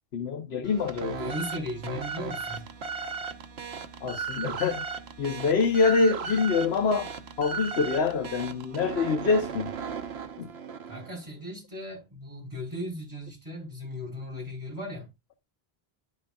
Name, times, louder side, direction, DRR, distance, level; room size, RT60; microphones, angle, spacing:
voice 1, 0.1-1.2 4.0-4.9 5.2-7.1 7.4-9.7 10.4-10.5, left 4 dB, 85° left, 1.2 m, -25 dB
sound 1, 0.6-11.2, right 5 dB, 80° right, 1.2 m, -36 dB
voice 2, 1.2-2.7 10.9-15.1, left 1 dB, 20° right, 3.9 m, -37 dB
11.5 x 5.6 x 2.3 m
omnidirectional pair, 1.0 m